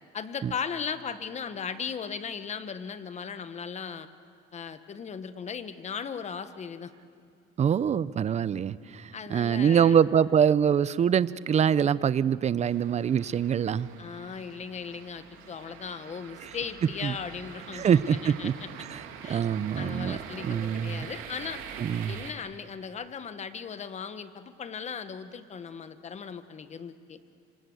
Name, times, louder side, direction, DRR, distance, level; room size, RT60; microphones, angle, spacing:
voice 1, 0.1-4.1 4.5-6.9 9.1-10.0 14.0-18.7 19.2-19.4 19.8-21.6 22.1-27.2, left 6 dB, 35° left, 11 dB, 1.2 m, -37 dB
voice 2, 7.6-13.9 16.4-16.5 17.0-17.1 17.7-18.5 18.9-19.0 19.3-20.2 20.4-21.1 21.8-22.1, right 8 dB, 35° right, 17 dB, 0.6 m, -24 dB
sound 1, 12.6-22.3, right 8 dB, 85° right, 3.0 m, -44 dB
26.5 x 26.0 x 7.9 m, 2.4 s
cardioid pair, 130°, 21 cm